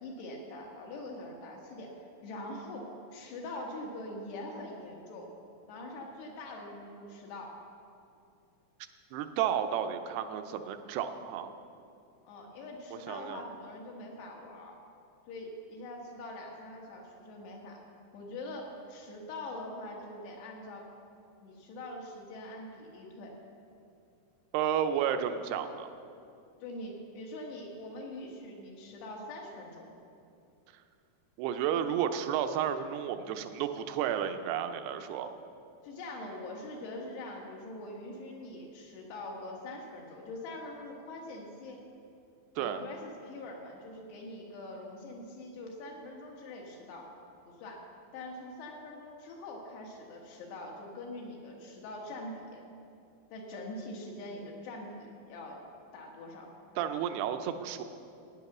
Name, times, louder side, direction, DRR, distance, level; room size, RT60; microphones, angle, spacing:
voice 1, 0.0-5.3 5.7-7.6 12.3-14.7 15.3-17.8 18.1-20.9 21.4-23.3 26.6-29.9 35.8-41.8 42.6-47.1 47.5-47.8 48.1-52.6 53.3-55.6 55.9-56.5, left 1 dB, 80° left, 0 dB, 3.9 m, -43 dB
voice 2, 9.1-11.6 13.1-13.4 24.5-25.9 31.4-35.3 42.6-42.8 56.8-57.8, right 9 dB, 80° right, 8 dB, 2.7 m, -32 dB
15.5 x 9.7 x 6.0 m, 2.5 s
omnidirectional pair, 4.7 m